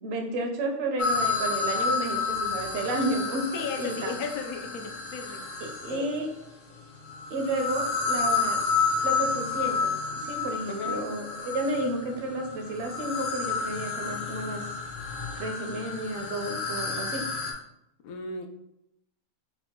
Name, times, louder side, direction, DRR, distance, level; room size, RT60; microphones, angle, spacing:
voice 1, 0.0-3.4 3.8-4.1 5.6-6.3 7.3-8.6 9.0-14.6 15.3-17.2, right 1 dB, 55° right, 2 dB, 0.8 m, -31 dB
sound 1, 1.0-6.2 7.0-17.5, left 4 dB, 55° left, 0.6 m, -30 dB
voice 2, 3.5-5.4 5.9-6.1 10.7-10.9 18.0-18.5, left 5 dB, 85° left, 5 dB, 1.0 m, -35 dB
4.7 x 2.2 x 3.6 m, 0.83 s
omnidirectional pair, 1.5 m